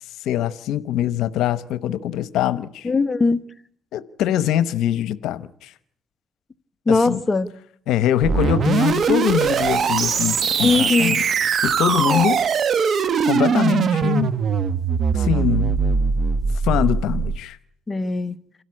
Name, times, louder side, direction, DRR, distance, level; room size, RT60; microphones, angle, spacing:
voice 1, 0.2-2.9 3.9-5.7 6.9-7.2 7.9-11.2 11.6-12.4 13.3-14.3 15.1-15.8 16.6-17.6, left 11 dB, 90° left, 0.9 m, -23 dB
voice 2, 2.8-3.4 6.9-7.5 10.6-11.1 12.0-12.2 17.9-18.3, left 3 dB, 25° left, 1.2 m, -20 dB
sound 1, 8.2-17.4, right 6 dB, 55° right, 1.2 m, -21 dB
27.5 x 12.5 x 9.8 m
cardioid pair, 90°, 0 cm